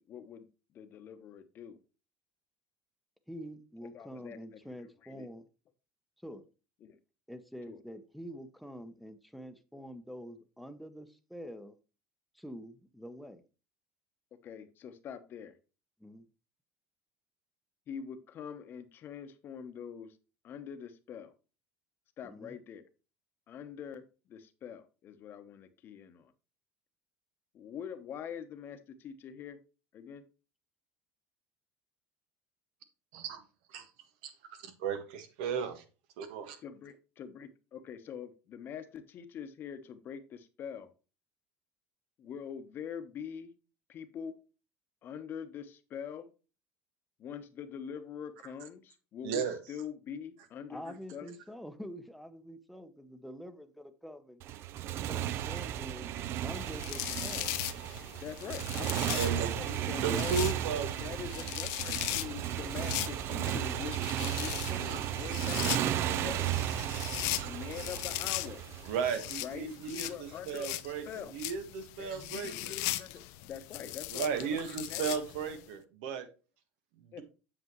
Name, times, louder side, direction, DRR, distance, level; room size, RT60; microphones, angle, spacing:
voice 1, 0.0-1.8 3.9-4.7 5.0-5.3 6.8-7.0 7.7-7.8 14.4-15.6 17.9-20.2 20.4-21.3 22.2-22.9 23.5-26.3 27.5-29.6 29.9-30.2 36.6-40.9 42.2-43.5 43.9-44.4 45.0-46.3 47.2-51.3 58.2-60.3 61.0-66.7 67.4-68.6 69.4-71.3 72.0-75.2 77.1-77.2, left 8 dB, 40° left, 10 dB, 1.0 m, -44 dB
voice 2, 3.3-5.4 6.2-6.4 7.3-11.7 12.3-13.4 16.0-16.3 22.2-22.6 50.7-54.4 55.0-57.5 59.1-59.2, equal, ahead, 8 dB, 0.8 m, -46 dB
voice 3, 34.8-35.8 36.2-36.6 49.2-49.6 59.1-59.5 60.0-61.0 64.8-65.4 66.9-67.0 67.3-67.6 68.9-72.5 74.1-76.3 77.0-77.2, right 6 dB, 90° right, 8 dB, 1.5 m, -35 dB
Motorcycle, 54.4-69.6, right 12 dB, 50° right, 0.5 m, -34 dB
sound 1, 56.5-75.6, left 17 dB, 75° left, 0.6 m, -39 dB
7.9 x 6.7 x 3.1 m, 0.32 s
cardioid pair, 140°, 5 cm